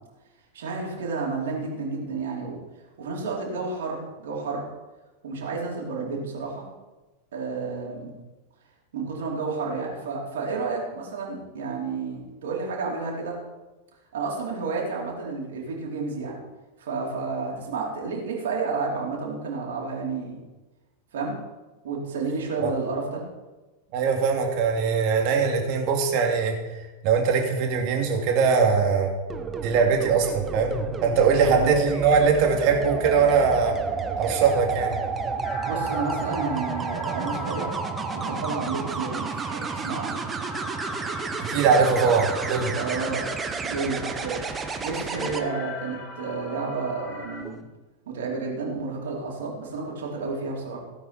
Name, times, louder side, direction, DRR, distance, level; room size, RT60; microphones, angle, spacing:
voice 1, 0.5-2.6 3.0-4.6 5.2-6.6 7.3-8.1 8.9-13.4 14.1-16.4 16.8-20.4 21.1-21.4 21.8-23.2 31.3-31.7 35.7-40.2 42.7-43.3 43.6-47.6 48.1-50.8, right 4 dB, 60° right, -3 dB, 4.4 m, -31 dB
voice 2, 23.9-26.5 27.0-29.1 29.6-33.7 34.2-34.9 41.5-42.7, right 5 dB, 45° right, 1 dB, 3.0 m, -21 dB
sound 1, 29.3-45.4 47.3-47.6, right 5 dB, 20° right, 1.2 m, -31 dB
sound 2, 35.4-47.4, left 4 dB, 40° left, 2.9 m, -41 dB
17.5 x 9.2 x 4.5 m, 1.1 s
figure-of-eight pair, 90°, 0 cm